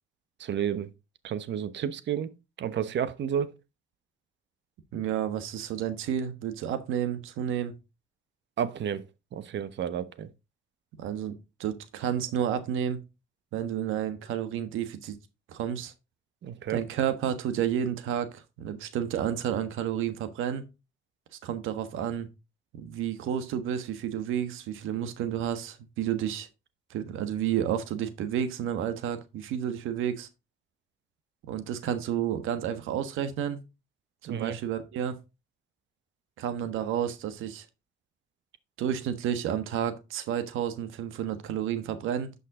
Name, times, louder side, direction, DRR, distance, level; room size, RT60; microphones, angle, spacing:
voice 1, 0.4-0.9 1.2-2.3 2.6-3.5 8.6-9.0 9.3-10.3 16.4-16.8 34.3-34.6, right 9 dB, 65° right, 1.0 m, -31 dB
voice 2, 4.9-7.7 11.0-11.3 11.6-13.0 13.5-15.2 15.5-15.9 16.7-20.6 21.4-22.3 22.7-26.5 26.9-30.3 31.4-33.6 34.2-35.2 36.4-37.6 38.8-42.3, right 9 dB, 90° right, 1.3 m, -31 dB
11.5 x 5.5 x 3.7 m
cardioid pair, 90°, 20 cm